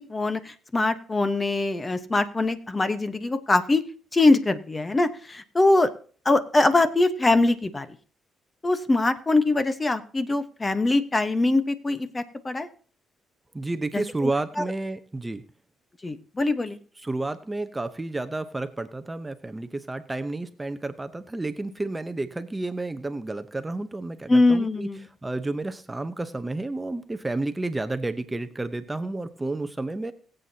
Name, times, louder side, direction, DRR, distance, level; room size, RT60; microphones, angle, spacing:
voice 1, 0.0-3.8 4.1-5.9 6.2-7.9 8.6-12.7 13.9-14.0 16.0-16.8 24.3-25.0, left 2 dB, 25° left, 11 dB, 1.0 m, -22 dB
voice 2, 13.5-15.4 17.0-30.1, right 2 dB, 15° right, 10 dB, 0.8 m, -31 dB
21.0 x 7.9 x 2.8 m, 0.43 s
cardioid pair, 90°, 0 cm